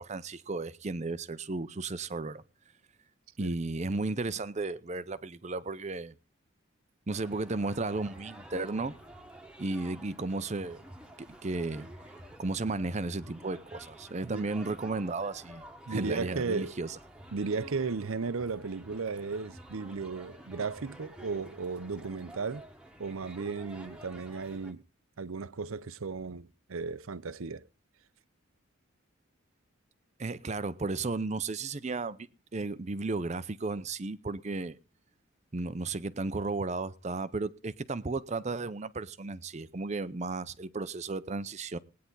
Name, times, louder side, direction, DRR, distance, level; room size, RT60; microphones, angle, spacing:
voice 1, 0.0-2.4 3.4-6.1 7.1-9.0 9.6-10.8 11.2-11.9 12.4-17.0 30.2-34.8 35.5-41.8, right 3 dB, 30° right, 0.6 m, -34 dB
sound 1, 7.1-24.7, right 1 dB, 5° right, 1.4 m, -50 dB
voice 2, 15.9-16.7 17.3-22.6 23.0-24.8 25.2-27.6, right 4 dB, 75° right, 0.7 m, -35 dB
19.5 x 9.5 x 3.9 m
head